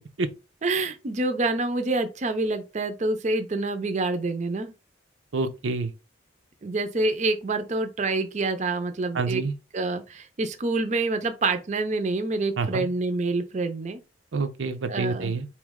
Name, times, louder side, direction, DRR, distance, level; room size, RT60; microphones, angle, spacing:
voice 1, 0.6-4.7 6.6-9.4 9.7-14.0 14.9-15.4, right 2 dB, 40° right, 0.5 m, -27 dB
voice 2, 5.3-5.9 9.1-9.5 12.6-12.9 14.3-15.5, right 4 dB, 85° right, 0.6 m, -27 dB
4.2 x 3.1 x 3.5 m
head